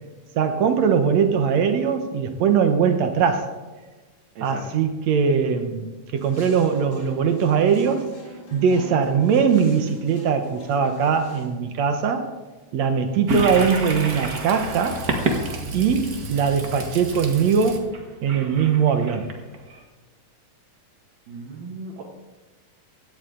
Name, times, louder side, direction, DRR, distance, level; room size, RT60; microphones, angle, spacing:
voice 1, 0.4-3.5 4.4-8.1 8.5-12.3 12.7-15.0 15.7-17.9 18.2-19.3, right 6 dB, 65° right, 7 dB, 1.9 m, -21 dB
sound 1, 6.2-11.5, left 1 dB, 70° left, 5.6 m, -41 dB
Toilet flush, 13.3-19.8, right 1 dB, 45° right, 1.1 m, -29 dB
voice 2, 21.3-22.0, right 3 dB, 90° right, -3 dB, 3.6 m, -36 dB
16.5 x 12.5 x 3.8 m, 1.2 s
omnidirectional pair, 4.1 m